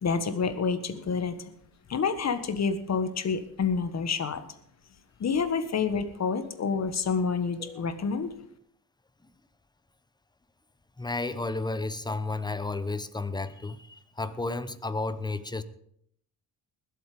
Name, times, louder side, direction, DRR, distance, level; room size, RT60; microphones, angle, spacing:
voice 1, 0.0-1.5 1.9-4.5 5.2-8.3, left 5 dB, 40° left, 10 dB, 1.5 m, -28 dB
voice 2, 11.0-15.6, left 3 dB, 10° left, 13 dB, 0.8 m, -32 dB
20.0 x 8.3 x 5.2 m, 0.70 s
cardioid pair, 115°, 40 cm